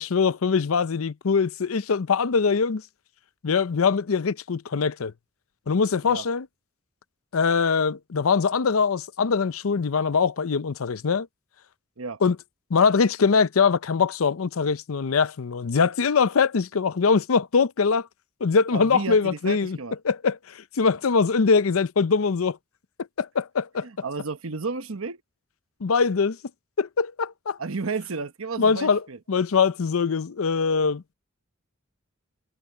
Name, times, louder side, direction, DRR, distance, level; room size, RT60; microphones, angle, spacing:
voice 1, 0.0-2.8 3.4-5.1 5.7-6.5 7.3-11.3 12.2-12.4 12.7-18.1 18.4-19.8 20.0-22.6 23.2-23.9 25.8-26.4 26.8-27.6 28.6-31.0, left 5 dB, 80° left, 0.6 m, -22 dB
voice 2, 18.7-19.9 23.8-25.2 27.6-29.2, right 4 dB, 75° right, 1.1 m, -32 dB
head